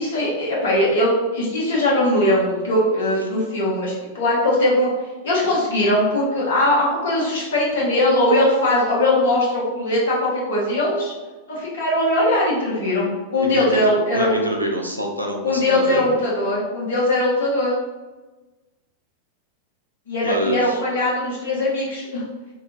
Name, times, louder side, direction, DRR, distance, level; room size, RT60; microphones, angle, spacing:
voice 1, 0.0-4.9 5.2-11.1 11.5-13.1 13.3-14.3 15.4-17.7 20.1-22.2, left 1 dB, 60° left, -5 dB, 1.0 m, -20 dB
voice 2, 13.5-16.1 20.2-20.8, equal, 90° right, 0 dB, 0.4 m, -26 dB
2.7 x 2.3 x 2.9 m, 1.2 s
figure-of-eight pair, 90°, 0 cm